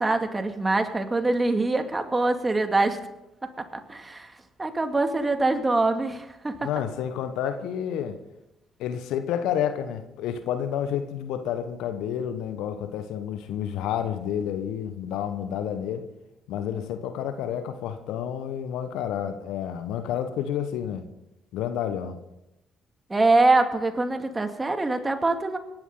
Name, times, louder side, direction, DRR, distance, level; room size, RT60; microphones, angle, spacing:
voice 1, 0.0-3.0 3.6-4.3 4.6-6.7 23.1-25.6, right 2 dB, 20° right, 6 dB, 2.3 m, -24 dB
voice 2, 6.6-8.2 8.8-16.1 16.5-21.0 21.5-22.2, left 9 dB, 70° left, 9 dB, 1.2 m, -30 dB
26.5 x 12.0 x 3.9 m, 0.94 s
hypercardioid pair, 50°, 0 cm